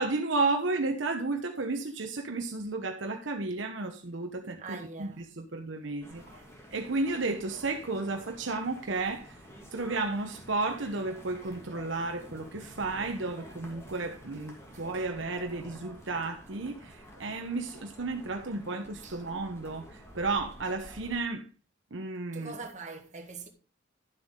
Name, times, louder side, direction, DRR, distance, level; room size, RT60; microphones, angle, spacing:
voice 1, 0.0-6.2 6.7-9.3 9.7-21.5 21.9-22.6, right 3 dB, 70° right, 1.0 m, -33 dB
voice 2, 4.6-5.3 6.2-6.5 14.7-14.8 19.0-19.2 22.3-23.5, right 4 dB, 40° right, 1.8 m, -43 dB
sound 1, 6.0-21.2, equal, 15° left, 2.5 m, -50 dB
12.0 x 7.6 x 3.8 m
head